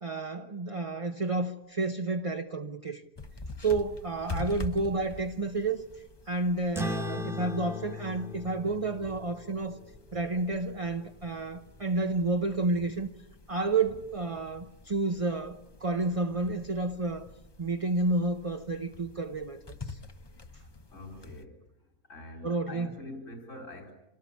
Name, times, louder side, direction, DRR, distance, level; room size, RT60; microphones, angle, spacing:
voice 1, 0.0-3.0 3.6-5.8 6.3-9.8 10.1-13.1 13.5-17.3 17.6-20.0 22.4-22.9, right 3 dB, 30° right, 0.8 m, -30 dB
sound 1, 3.2-21.4, left 3 dB, 25° left, 0.7 m, -46 dB
sound 2, 6.7-11.6, left 3 dB, ahead, 1.4 m, -39 dB
voice 2, 20.9-21.6 22.1-23.9, left 1 dB, 65° left, 4.4 m, -44 dB
27.5 x 18.0 x 8.5 m
omnidirectional pair, 1.4 m